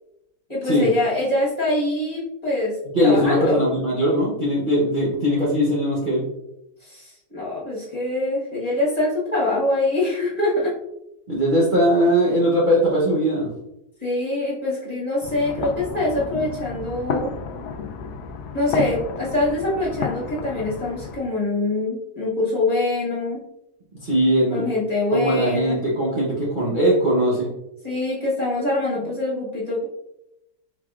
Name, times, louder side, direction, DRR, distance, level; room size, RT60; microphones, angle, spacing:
voice 1, 0.5-2.8 3.0-3.6 6.8-10.7 14.0-17.3 18.5-23.4 24.5-25.8 27.8-29.8, left 2 dB, 25° left, -6 dB, 1.3 m, -24 dB
voice 2, 2.9-6.2 11.3-13.5 24.0-24.6 25.1-27.5, equal, 40° right, -6 dB, 0.8 m, -20 dB
sound 1, 15.2-21.2, left 5 dB, 85° left, 1.1 m, -31 dB
4.7 x 4.0 x 2.4 m, 0.84 s
omnidirectional pair, 1.7 m